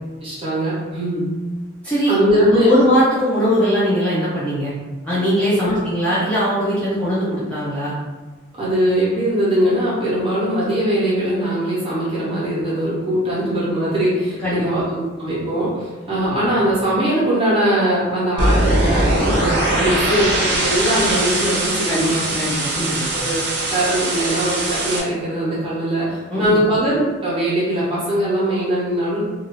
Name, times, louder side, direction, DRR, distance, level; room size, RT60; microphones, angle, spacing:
voice 1, 0.2-1.2 2.1-2.7 5.6-5.8 8.5-22.4 23.1-23.4 23.7-29.2, right 1 dB, 30° right, -8 dB, 1.0 m, -21 dB
voice 2, 2.5-4.7 5.0-7.9 14.4-14.8 16.2-16.4 19.8-19.9 21.9-23.1 26.3-26.6, equal, 5° left, -11 dB, 0.5 m, -20 dB
sound 1, 18.4-25.0, right 1 dB, 70° right, 0.6 m, -21 dB
2.6 x 2.4 x 3.0 m, 1.3 s
head